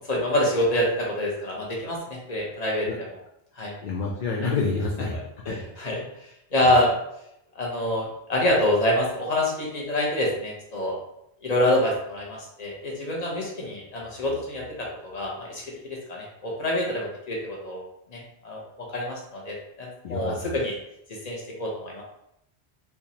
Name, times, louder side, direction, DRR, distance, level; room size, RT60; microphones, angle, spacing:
voice 1, 0.0-2.9 3.6-3.7 4.4-4.5 5.1-5.2 5.5-6.0 6.5-6.9 7.6-11.0 11.4-17.8 18.1-20.7 21.1-22.0, left 1 dB, 40° left, -2 dB, 0.9 m, -26 dB
voice 2, 3.8-5.1 5.5-5.6 20.0-20.6, left 4 dB, 60° left, -1 dB, 0.6 m, -28 dB
3.5 x 2.9 x 2.8 m, 0.79 s
omnidirectional pair, 1.0 m